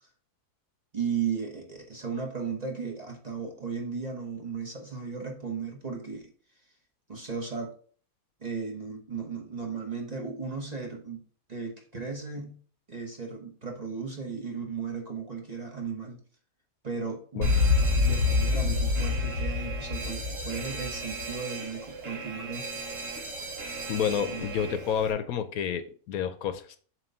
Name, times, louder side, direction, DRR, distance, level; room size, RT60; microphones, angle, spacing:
voice 1, 0.9-6.3 7.1-7.7 8.4-11.2 11.5-12.6 12.9-16.2 16.8-17.6 18.0-22.8 24.3-24.5, right 5 dB, 30° right, 1 dB, 1.0 m, -35 dB
Alarm, 17.4-25.1, left 3 dB, 55° right, 1.6 m, -29 dB
voice 2, 23.9-26.8, left 8 dB, 75° left, 10 dB, 1.0 m, -29 dB
7.5 x 3.0 x 5.4 m, 0.44 s
omnidirectional pair, 1.6 m